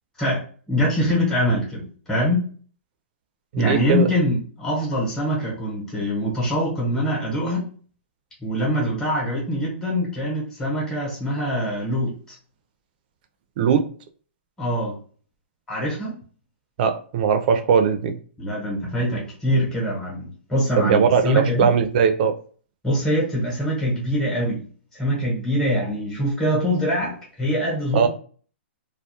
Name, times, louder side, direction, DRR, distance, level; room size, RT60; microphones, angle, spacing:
voice 1, 0.7-2.4 3.6-7.7 8.4-12.4 14.6-15.0 15.7-16.1 18.4-21.7 22.8-24.6 24.9-28.1, equal, 5° left, -5 dB, 0.9 m, -24 dB
voice 2, 3.5-4.1 13.6-13.8 16.8-18.2 20.8-22.3 27.9-28.1, right 7 dB, 45° right, 7 dB, 0.4 m, -19 dB
2.3 x 2.0 x 2.7 m, 0.42 s
hypercardioid pair, 150°, 6 cm